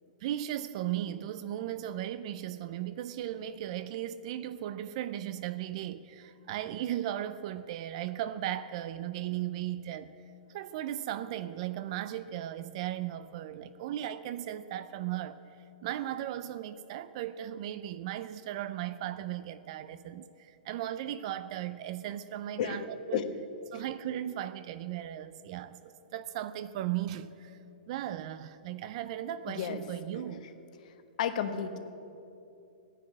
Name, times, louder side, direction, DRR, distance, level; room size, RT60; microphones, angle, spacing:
voice 1, 0.2-10.1 10.5-15.4 15.8-23.2 23.7-27.6 27.9-30.5, right 12 dB, 40° right, 0.5 m, -36 dB
voice 2, 29.5-29.8 30.1-30.4 31.2-31.8, left 9 dB, 50° left, 1.3 m, -32 dB
15.5 x 10.0 x 8.7 m
hypercardioid pair, 160°, 5 cm